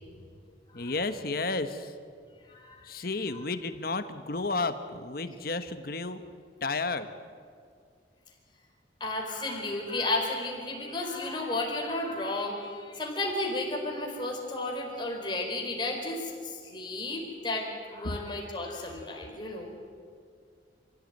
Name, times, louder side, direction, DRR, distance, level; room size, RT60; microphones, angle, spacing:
voice 1, 0.7-2.0 2.8-6.2 6.6-7.1 18.0-18.2, left 3 dB, 55° left, 9 dB, 1.3 m, -32 dB
voice 2, 2.5-2.9 9.0-19.7, left 2 dB, 25° left, 0 dB, 4.7 m, -33 dB
26.0 x 16.0 x 9.3 m, 2.2 s
head